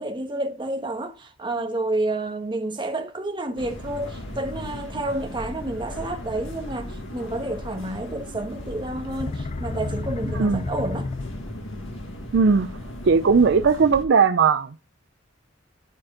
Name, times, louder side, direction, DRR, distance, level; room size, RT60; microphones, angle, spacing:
voice 1, 0.0-11.1, right 2 dB, 25° right, 1.3 m, -30 dB
sound 1, 3.6-14.0, left 1 dB, 70° left, 1.9 m, -37 dB
sound 2, 8.9-11.7, left 3 dB, 35° left, 0.4 m, -31 dB
voice 2, 10.3-10.7 12.3-12.7 13.0-14.9, right 5 dB, 60° right, 0.5 m, -18 dB
11.5 x 4.3 x 3.7 m
head